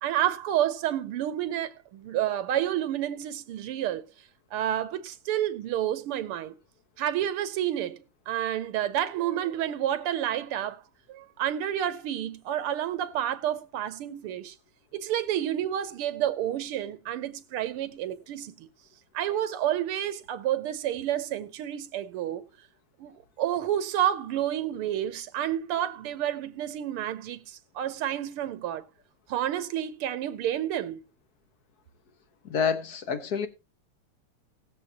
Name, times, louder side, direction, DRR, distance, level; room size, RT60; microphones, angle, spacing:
voice 1, 0.0-4.0 4.5-6.5 7.0-10.8 11.1-14.6 14.9-18.7 19.1-22.5 23.0-28.8 29.3-31.0, right 11 dB, 85° right, 1.8 m, -30 dB
voice 2, 32.4-33.5, left 6 dB, 50° left, 1.4 m, -28 dB
19.0 x 7.2 x 2.8 m
omnidirectional pair, 2.4 m